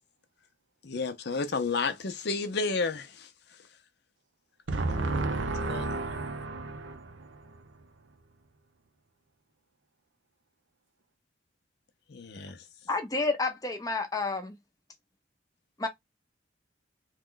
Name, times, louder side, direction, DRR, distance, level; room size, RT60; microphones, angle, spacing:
voice 1, 0.8-3.3 5.6-5.9 12.1-12.6, left 4 dB, 60° left, 0.6 m, -31 dB
voice 2, 4.7-7.5, right 2 dB, 80° right, 0.7 m, -32 dB
voice 3, 12.9-14.6 15.8-15.9, left 3 dB, 20° left, 0.7 m, -30 dB
3.0 x 2.3 x 3.8 m
head